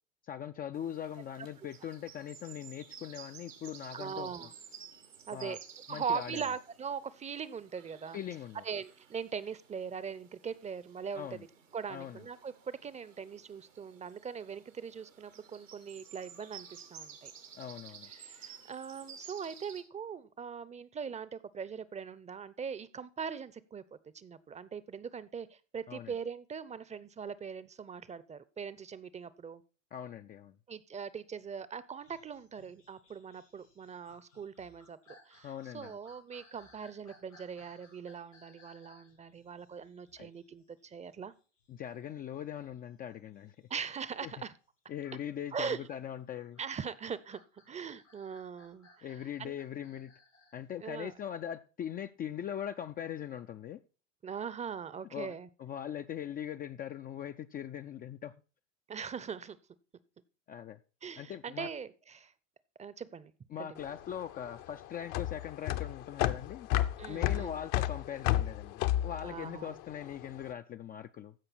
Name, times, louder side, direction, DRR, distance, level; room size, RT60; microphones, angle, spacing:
voice 1, 0.2-4.5 5.3-5.6 5.9-6.4 8.1-8.6 11.1-11.4 11.9-12.2 17.6-18.1 25.9-26.1 29.9-30.6 35.4-36.0 40.2-40.3 41.7-43.7 44.2-44.3 44.9-46.6 49.0-50.1 50.5-53.8 55.1-58.3 60.5-60.8 61.2-61.7 63.5-66.7 67.1-71.3, left 9 dB, 25° left, 0.4 m, -41 dB
sound 1, 0.7-19.8, right 7 dB, 90° right, 2.1 m, -53 dB
voice 2, 3.9-4.5 5.3-5.6 5.9-8.2 8.6-11.5 11.7-17.3 18.1-29.6 30.7-41.3 43.7-44.5 45.5-45.9 46.6-47.4 47.7-49.5 50.8-51.1 54.2-55.5 58.9-59.6 61.0-62.3 62.8-63.3 63.6-63.8 67.0-67.6 69.2-69.8, right 6 dB, 20° right, 0.7 m, -41 dB
sound 2, 32.0-44.4 45.0-50.6 51.1-51.2, left 2 dB, 85° left, 6.5 m, -63 dB
sound 3, 63.8-70.3, left 14 dB, 55° left, 0.8 m, -32 dB
15.0 x 5.5 x 4.2 m
hypercardioid pair, 85°, 37 cm